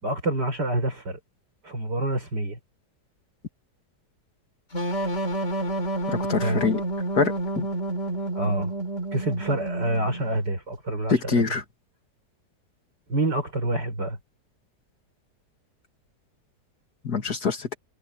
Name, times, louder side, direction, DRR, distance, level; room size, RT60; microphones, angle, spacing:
voice 1, 0.0-1.2 1.6-2.6 6.4-6.6 8.3-8.7 9.1-11.5 13.1-14.2, right 1 dB, 70° right, 6.2 m, -27 dB
sound 1, 4.7-10.4, right 2 dB, 40° left, 3.7 m, -29 dB
voice 2, 6.1-6.8 7.1-7.7 11.1-11.6 17.0-17.8, left 5 dB, 60° left, 2.8 m, -25 dB
omnidirectional pair, 1.9 m